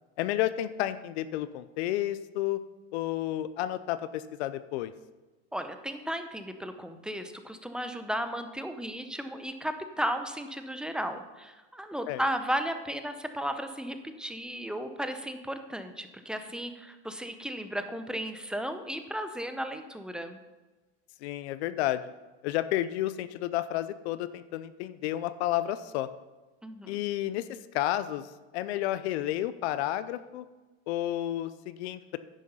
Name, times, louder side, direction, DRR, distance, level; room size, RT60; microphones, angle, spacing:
voice 1, 0.2-2.6 2.9-4.9 12.1-12.2 21.2-22.0 22.4-26.1 26.9-28.2 28.5-30.5 30.9-32.2, left 13 dB, 80° left, 14 dB, 0.6 m, -31 dB
voice 2, 5.5-20.4 26.6-27.0, equal, ahead, 8 dB, 0.7 m, -35 dB
10.0 x 6.4 x 5.5 m, 1.2 s
supercardioid pair, 115°, 32 cm